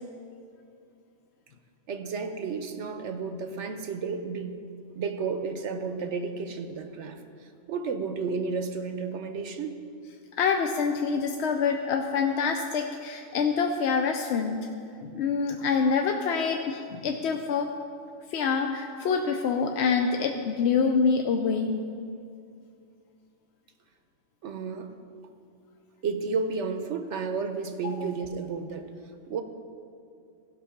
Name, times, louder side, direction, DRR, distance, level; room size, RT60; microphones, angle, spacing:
voice 1, 1.9-4.5 5.0-9.8 24.4-24.9 26.0-28.9 29.3-29.4, right 5 dB, 65° right, 7 dB, 1.0 m, -32 dB
voice 2, 10.4-14.7 15.0-17.7 18.3-21.8 27.8-27.9, left 5 dB, 65° left, 4 dB, 0.8 m, -26 dB
16.0 x 5.5 x 5.8 m, 2.4 s
omnidirectional pair, 1.3 m